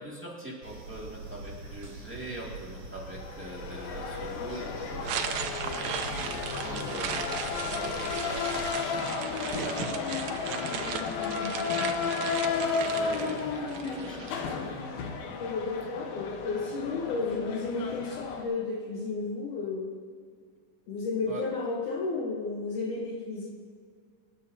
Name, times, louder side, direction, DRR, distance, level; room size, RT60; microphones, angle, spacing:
voice 1, 0.0-6.0 6.6-8.5 9.3-10.1 10.4-10.8 12.6-14.6 21.3-21.5, right 1 dB, 5° right, -5 dB, 1.1 m, -42 dB
sound 1, 0.6-8.8, right 3 dB, 50° right, 3.6 m, -43 dB
sound 2, 3.1-18.4, left 5 dB, 90° left, 2.9 m, -33 dB
sound 3, 5.0-14.3, right 8 dB, 75° right, 1.7 m, -37 dB
voice 2, 15.4-20.0 20.9-23.5, left 4 dB, 65° left, -2 dB, 2.4 m, -32 dB
25.0 x 10.0 x 2.8 m, 2.1 s
omnidirectional pair, 4.2 m